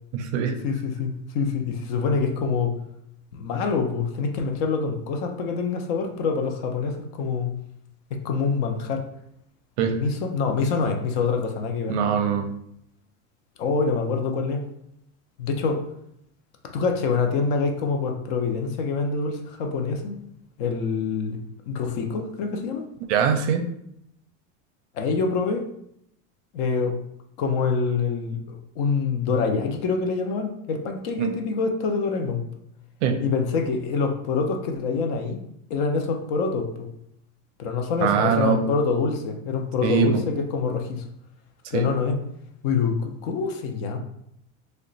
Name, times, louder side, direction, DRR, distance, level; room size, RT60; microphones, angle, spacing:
voice 1, 0.1-0.6 9.8-9.9 11.9-12.4 23.1-23.6 31.2-31.3 33.0-33.1 38.0-38.6 39.8-40.2 41.7-41.8, right 7 dB, 60° right, 5 dB, 0.5 m, -22 dB
voice 2, 0.6-2.7 3.3-7.5 8.1-9.0 10.0-12.0 13.6-14.6 15.4-15.9 16.7-20.2 20.6-21.4 21.7-22.8 24.9-25.7 26.5-26.9 27.4-32.4 33.2-35.4 35.7-36.9 37.6-41.1 41.7-42.2 42.6-44.0, left 4 dB, 50° left, 4 dB, 0.5 m, -25 dB
2.8 x 2.1 x 3.8 m, 0.76 s
supercardioid pair, 165°, 40 cm